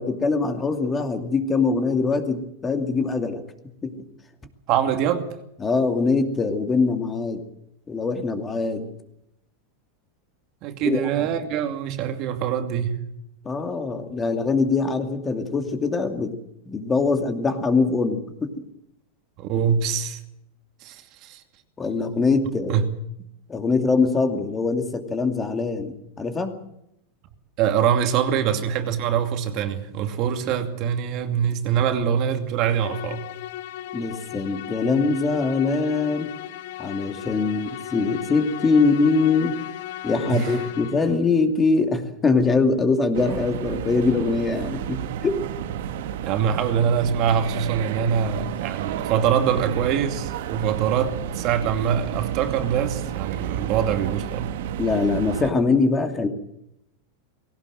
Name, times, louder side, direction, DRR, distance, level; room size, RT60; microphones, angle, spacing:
voice 1, 0.0-3.4 3.8-3.9 5.6-7.4 7.9-8.9 10.8-11.2 13.4-16.4 16.7-18.5 21.8-22.8 23.5-26.6 33.9-36.3 36.8-39.5 40.0-45.4 54.8-56.3, left 4 dB, 15° left, 2.5 m, -23 dB
voice 2, 4.7-5.3 10.6-13.0 19.4-20.2 20.8-21.4 22.7-22.9 27.6-33.3 40.3-40.6 46.2-54.6, right 8 dB, 45° right, 2.5 m, -24 dB
Musical instrument, 32.8-41.3, left 13 dB, 70° left, 2.2 m, -36 dB
sound 1, 43.1-55.5, right 10 dB, 70° right, 1.6 m, -31 dB
20.5 x 17.5 x 7.8 m
supercardioid pair, 145°, 0 cm